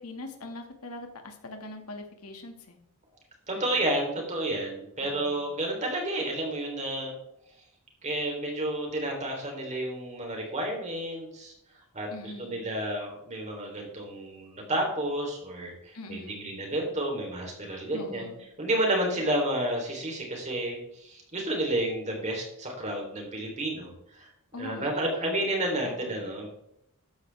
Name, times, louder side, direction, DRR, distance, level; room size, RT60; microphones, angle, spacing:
voice 1, 0.0-2.8 3.5-3.8 5.0-5.5 12.1-12.8 15.9-16.6 17.9-18.5 24.5-25.4 25.8-26.4, left 2 dB, 85° left, 4 dB, 2.0 m, -43 dB
voice 2, 3.5-7.2 8.0-11.5 11.9-18.3 18.6-24.3 24.6-26.5, right 1 dB, 30° right, 1 dB, 3.6 m, -31 dB
13.5 x 9.8 x 3.5 m, 0.78 s
head